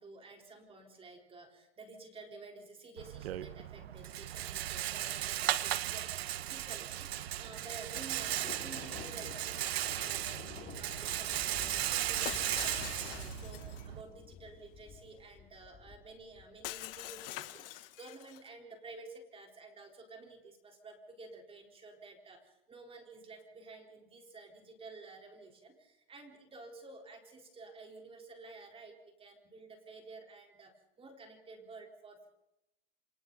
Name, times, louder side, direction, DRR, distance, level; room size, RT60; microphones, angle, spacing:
voice 1, 0.0-30.7 31.0-32.3, right 3 dB, 20° right, 2 dB, 4.1 m, -52 dB
Rattle, 3.0-14.0, right 13 dB, 85° right, 1.2 m, -36 dB
Thunder, 7.4-17.2, left 8 dB, 30° left, 2.7 m, -51 dB
Shatter, 12.2-13.9 16.6-18.5, left 16 dB, 65° left, 1.5 m, -44 dB
28.5 x 25.0 x 4.0 m, 0.89 s
supercardioid pair, 135°, 30 cm